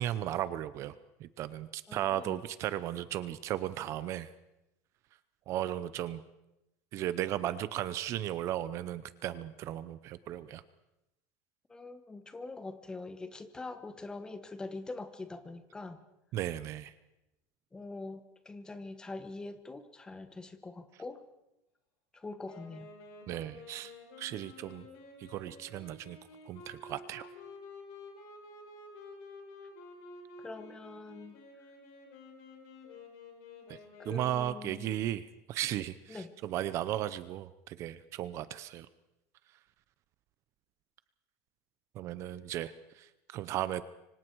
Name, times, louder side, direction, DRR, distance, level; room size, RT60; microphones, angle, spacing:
voice 1, 0.0-4.3 5.5-6.2 6.9-10.6 16.3-16.9 23.3-23.9 24.2-24.8 25.2-26.2 26.5-27.3 33.7-33.8 34.0-38.9 41.9-43.8, right 12 dB, 40° right, 15 dB, 0.7 m, -36 dB
voice 2, 1.9-2.4 11.7-16.0 17.7-21.2 22.1-22.9 30.4-31.4 34.0-34.9 36.1-36.3, left 3 dB, 10° left, 10 dB, 1.2 m, -44 dB
Wind instrument woodwind instrument, 22.4-34.9, left 2 dB, 65° left, 6.0 m, -51 dB
26.5 x 25.0 x 4.7 m, 0.92 s
cardioid pair, 165°, 8 cm